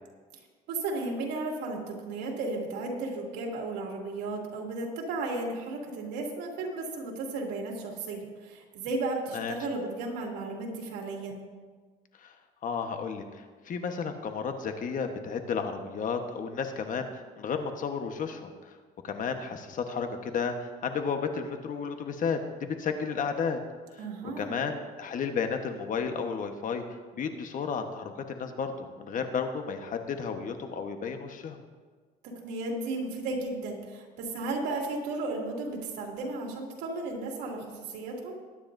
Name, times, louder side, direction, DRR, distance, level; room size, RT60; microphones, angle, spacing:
voice 1, 0.7-11.4 24.0-24.6 32.2-38.4, right 2 dB, 85° right, -1 dB, 2.7 m, -34 dB
voice 2, 12.6-18.8 19.0-23.6 24.2-26.8 27.1-31.6, left 6 dB, 50° left, 6 dB, 1.3 m, -33 dB
21.0 x 9.7 x 2.7 m, 1.5 s
cardioid pair, 110°, 17 cm